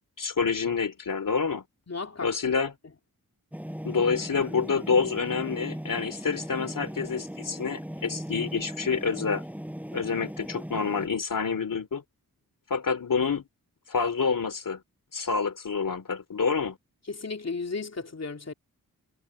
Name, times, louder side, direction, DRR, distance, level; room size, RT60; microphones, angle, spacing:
voice 1, 0.2-1.6 2.2-2.7 3.8-9.4 9.9-12.0 12.7-13.4 13.9-14.8 15.1-16.8, left 5 dB, 60° left, 3.0 m, -27 dB
voice 2, 1.9-2.3 17.1-18.5, left 4 dB, 45° left, 3.0 m, -34 dB
sound 1, 3.5-11.1, equal, 5° right, 7.9 m, -38 dB
cardioid pair, 65°, 36 cm